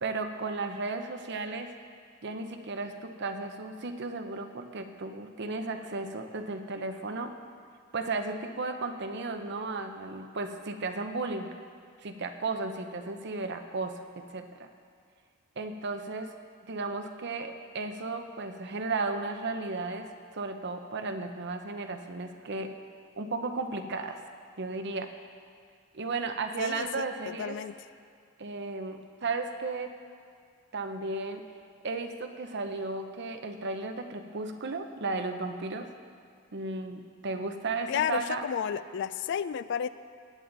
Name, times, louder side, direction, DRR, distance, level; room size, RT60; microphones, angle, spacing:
voice 1, 0.0-1.8 2.2-7.3 7.9-11.5 12.0-14.7 15.6-16.3 16.6-22.7 23.2-24.2 24.6-25.1 25.9-27.6 28.4-30.0 30.7-31.5 31.8-35.9 36.5-38.5, right 3 dB, 55° right, 6 dB, 0.8 m, -34 dB
voice 2, 26.6-27.1 27.4-27.8 37.9-39.9, left 8 dB, 60° left, 15 dB, 0.3 m, -32 dB
18.0 x 8.8 x 4.0 m, 2.2 s
head